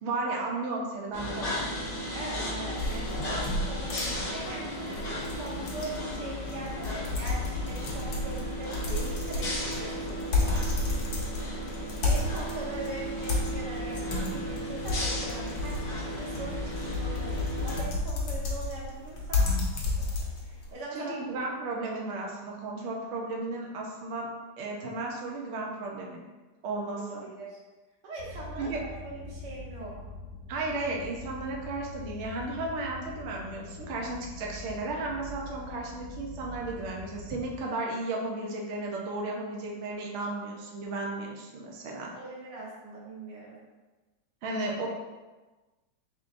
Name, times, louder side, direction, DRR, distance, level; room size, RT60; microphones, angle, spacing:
voice 1, 0.0-1.6 20.9-24.3 24.6-26.2 26.6-27.2 28.6-28.8 30.5-42.1 44.4-44.9, right 2 dB, 90° right, -1 dB, 0.6 m, -34 dB
sound 1, 1.1-17.8, equal, 55° left, 0.7 m, -35 dB
voice 2, 2.1-10.6 12.0-21.2 26.9-27.6 28.0-30.0 42.1-43.6, right 2 dB, 65° right, -4 dB, 1.5 m, -41 dB
sound 2, 2.8-20.7, left 2 dB, 85° left, 1.6 m, -32 dB
sound 3, 28.2-37.6, left 2 dB, 50° right, 1.5 m, -44 dB
4.1 x 3.8 x 2.5 m, 1.2 s
omnidirectional pair, 2.1 m